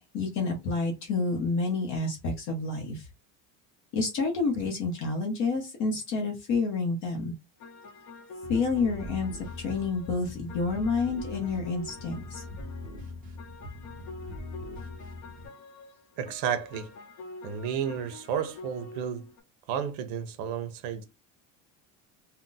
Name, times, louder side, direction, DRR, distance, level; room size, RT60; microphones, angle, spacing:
voice 1, 0.0-3.0 3.9-7.3 8.5-12.4, left 4 dB, 45° left, 0.8 m, -29 dB
sound 1, 7.6-19.4, left 2 dB, 70° left, 0.9 m, -46 dB
sound 2, 8.4-15.5, left 2 dB, 20° right, 0.7 m, -42 dB
voice 2, 16.2-16.9 17.4-19.3 19.7-21.0, right 8 dB, 60° right, 0.7 m, -32 dB
2.5 x 2.2 x 3.8 m
cardioid pair, 170°, 40 cm